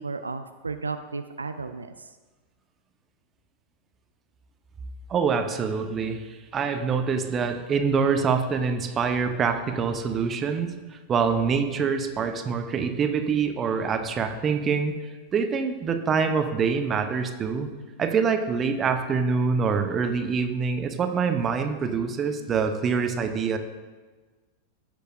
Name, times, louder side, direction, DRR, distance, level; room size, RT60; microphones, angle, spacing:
voice 1, 0.0-2.1, right 4 dB, 80° right, 9 dB, 0.4 m, -34 dB
voice 2, 5.1-14.9 15.3-17.7 18.0-23.6, right 5 dB, 25° right, 6 dB, 0.9 m, -25 dB
16.5 x 6.6 x 2.7 m, 1.3 s
figure-of-eight pair, 90°, 0 cm